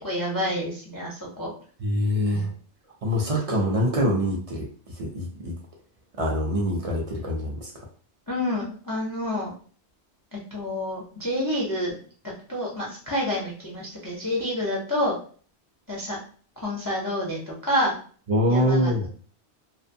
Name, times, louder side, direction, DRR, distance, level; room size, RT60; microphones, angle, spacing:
voice 1, 0.0-1.5 8.3-9.5 10.3-12.0 12.5-15.2 15.9-16.2 16.6-17.9 18.5-19.1, left 1 dB, 30° left, -4 dB, 0.3 m, -28 dB
voice 2, 1.8-2.5 3.0-4.7 5.0-5.5 6.2-7.7 18.3-19.1, equal, 55° right, 0 dB, 0.4 m, -24 dB
2.6 x 2.1 x 2.6 m, 0.43 s
omnidirectional pair, 1.2 m